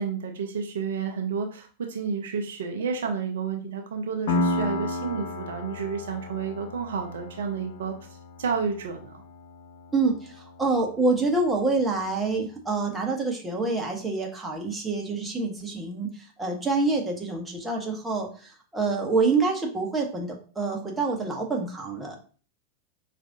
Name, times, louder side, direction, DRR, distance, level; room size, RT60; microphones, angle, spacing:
voice 1, 0.0-7.9 8.4-9.1, right 6 dB, 60° right, 3 dB, 0.5 m, -30 dB
Piano, 4.3-11.7, left 2 dB, 50° left, 0.5 m, -33 dB
voice 2, 9.9-22.2, right 3 dB, 10° right, 0 dB, 0.9 m, -27 dB
4.7 x 2.5 x 2.6 m, 0.40 s
figure-of-eight pair, 90°, 0 cm